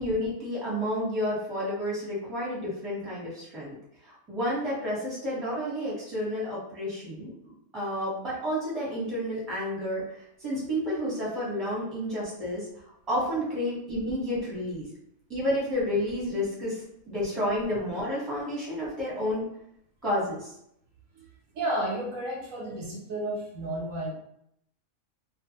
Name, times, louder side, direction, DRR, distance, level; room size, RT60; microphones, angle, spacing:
voice 1, 0.0-3.7 4.0-14.8 15.3-19.4 20.0-20.5, equal, ahead, -7 dB, 0.8 m, -31 dB
voice 2, 21.5-24.1, right 1 dB, 70° right, -1 dB, 0.9 m, -32 dB
2.4 x 2.3 x 2.8 m, 0.75 s
omnidirectional pair, 1.6 m